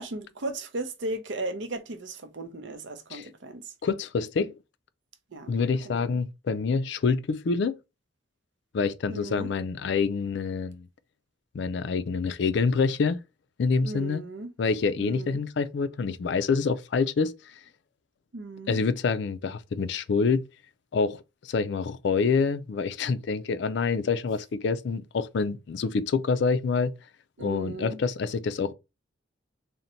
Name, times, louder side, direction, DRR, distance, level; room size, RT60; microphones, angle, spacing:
voice 1, 0.0-3.7 5.3-5.5 5.8-6.2 9.1-9.5 13.8-14.5 15.0-15.4 18.3-18.8 27.4-28.0, right 2 dB, 65° right, 0.6 m, -36 dB
voice 2, 3.8-4.5 5.5-7.8 8.7-10.9 11.5-13.2 13.6-14.2 14.6-17.5 18.7-20.4 20.9-26.9 27.4-28.7, left 5 dB, 60° left, 0.4 m, -26 dB
3.9 x 2.1 x 4.2 m
head